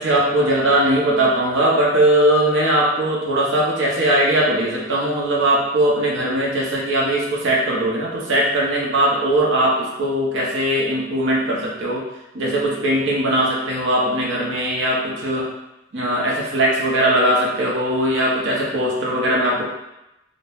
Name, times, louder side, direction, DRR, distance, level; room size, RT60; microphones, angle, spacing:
voice 1, 0.0-12.0 12.3-15.5 15.9-19.6, right 1 dB, 65° right, -4 dB, 0.7 m, -19 dB
2.8 x 2.0 x 3.3 m, 0.92 s
head